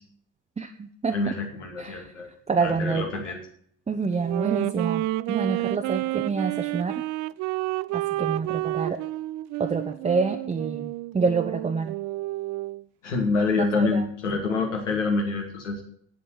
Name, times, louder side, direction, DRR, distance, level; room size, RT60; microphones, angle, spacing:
voice 1, 0.6-1.2 1.8-2.1 2.5-3.0 3.9-7.0 7.9-9.0 9.6-12.0 13.7-14.0, right 5 dB, 20° right, 4 dB, 0.9 m, -27 dB
voice 2, 1.1-2.3 2.6-3.4 13.0-15.8, left 3 dB, 85° left, 1 dB, 2.5 m, -26 dB
Wind instrument woodwind instrument, 4.2-12.8, right 18 dB, 50° right, 0.5 m, -30 dB
8.7 x 8.0 x 8.6 m, 0.64 s
figure-of-eight pair, 60°, 36 cm